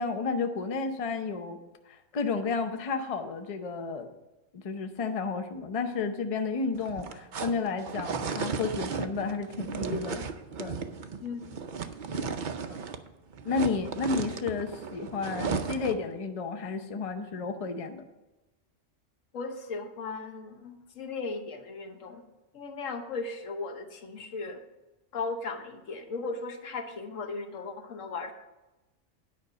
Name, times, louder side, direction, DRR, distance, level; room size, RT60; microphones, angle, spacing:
voice 1, 0.0-1.6 2.1-4.1 4.5-10.3 10.6-10.8 13.4-18.0, left 4 dB, 35° left, 6 dB, 0.6 m, -32 dB
sound 1, 6.7-13.1 13.3-16.1, right 5 dB, 50° right, 0.6 m, -35 dB
voice 2, 11.2-12.9 19.3-22.2 22.5-24.6 25.1-28.3, left 4 dB, 80° left, 6 dB, 1.4 m, -37 dB
9.6 x 5.2 x 6.7 m, 1.0 s
omnidirectional pair, 1.3 m